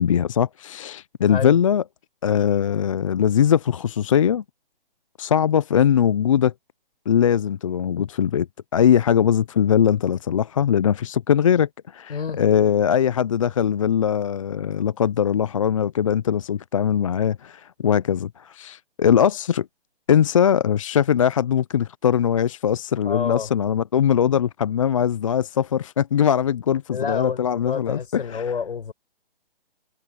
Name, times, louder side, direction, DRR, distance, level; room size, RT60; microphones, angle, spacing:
voice 1, 0.0-1.8 2.2-4.4 5.2-6.5 7.1-8.5 8.7-19.7 20.1-28.5, left 8 dB, 35° left, 0.5 m, -21 dB
voice 2, 1.3-1.6 12.1-12.4 23.0-23.5 26.9-28.9, left 6 dB, 65° left, 7.0 m, -29 dB
hypercardioid pair, 155°, 30 cm